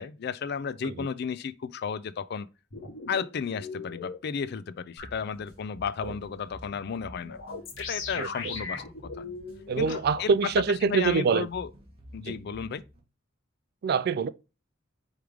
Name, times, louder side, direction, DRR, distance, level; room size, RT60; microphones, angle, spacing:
voice 1, 0.0-2.5 3.1-7.4 7.8-8.8 9.2-9.3 9.8-10.5 10.8-11.7 12.1-12.8, left 6 dB, 55° left, 0.4 m, -33 dB
sound 1, 2.7-4.1 5.0-5.1 7.3-10.2, left 4 dB, 70° left, 1.3 m, -38 dB
sound 2, 5.0-13.0, equal, 30° right, 1.4 m, -49 dB
voice 2, 9.7-11.5 12.3-12.4 13.8-14.3, right 5 dB, 50° right, 0.3 m, -25 dB
4.8 x 3.2 x 3.5 m
head